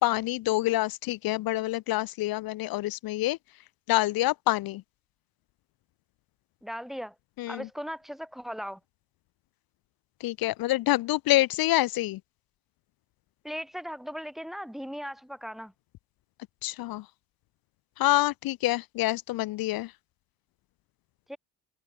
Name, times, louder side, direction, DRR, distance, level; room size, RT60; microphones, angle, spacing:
voice 1, 0.0-3.4 3.9-4.8 7.4-7.7 10.2-12.2 16.6-17.1 18.0-19.9, left 17 dB, 65° left, 1.2 m, -27 dB
voice 2, 6.6-7.1 7.5-8.8 13.4-15.7 21.3-21.4, equal, ahead, 4.0 m, -38 dB
supercardioid pair, 85°, 38 cm